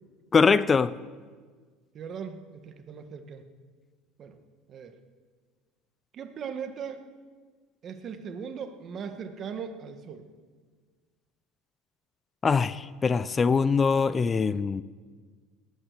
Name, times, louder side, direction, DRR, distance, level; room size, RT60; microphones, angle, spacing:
voice 1, 0.3-0.9 12.4-14.8, left 5 dB, 25° left, 17 dB, 0.4 m, -23 dB
voice 2, 1.9-3.4 4.2-4.4 4.7-5.0 6.1-7.0 7.8-10.2, right 6 dB, 45° right, 7 dB, 1.6 m, -39 dB
19.0 x 9.6 x 6.9 m, 1.5 s
supercardioid pair, 100°, 0 cm